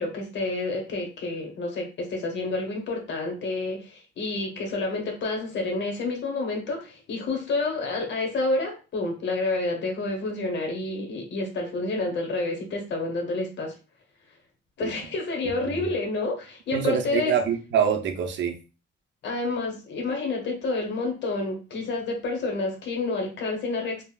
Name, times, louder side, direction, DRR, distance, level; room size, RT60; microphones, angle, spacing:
voice 1, 0.0-13.7 14.8-17.4 19.2-24.0, left 2 dB, 65° left, 1.0 m, -29 dB
voice 2, 16.7-18.6, right 8 dB, 65° right, 0.6 m, -25 dB
3.3 x 2.0 x 2.3 m
cardioid pair, 90°, 20 cm